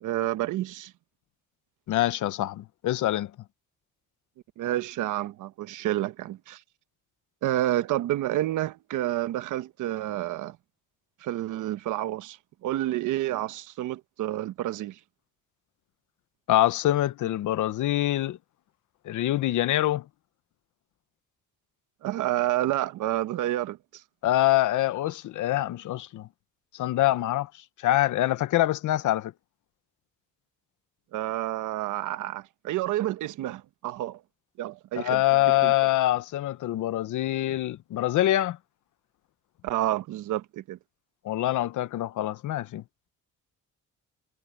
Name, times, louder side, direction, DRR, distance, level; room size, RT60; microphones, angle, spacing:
voice 1, 0.0-0.9 4.6-6.6 7.4-10.6 11.2-12.4 12.6-14.9 22.0-23.8 31.1-34.2 34.6-35.2 35.6-35.7 39.6-40.8, right 14 dB, 85° right, 1.2 m, -29 dB
voice 2, 1.9-3.3 16.5-18.4 19.0-20.0 24.2-26.3 26.7-27.5 27.8-29.3 35.0-38.6 41.2-42.8, left 14 dB, 80° left, 1.1 m, -25 dB
cardioid pair, 90°, 30 cm